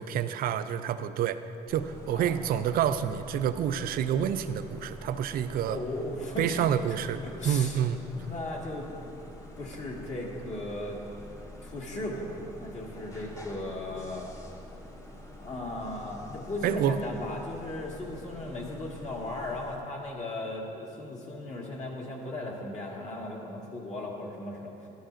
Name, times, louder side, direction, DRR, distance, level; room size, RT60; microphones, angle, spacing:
voice 1, 0.0-1.4 1.7-5.8 6.4-8.0 16.6-17.0, right 9 dB, 60° right, 11 dB, 0.4 m, -28 dB
sound 1, 1.7-19.8, left 1 dB, 20° left, 1.1 m, -46 dB
voice 2, 5.6-7.0 7.2-7.8 8.1-8.9 9.6-11.0 11.6-14.3 15.4-24.9, left 1 dB, 45° left, -2 dB, 1.8 m, -37 dB
12.0 x 11.5 x 2.5 m, 2.7 s
cardioid pair, 110°, 17 cm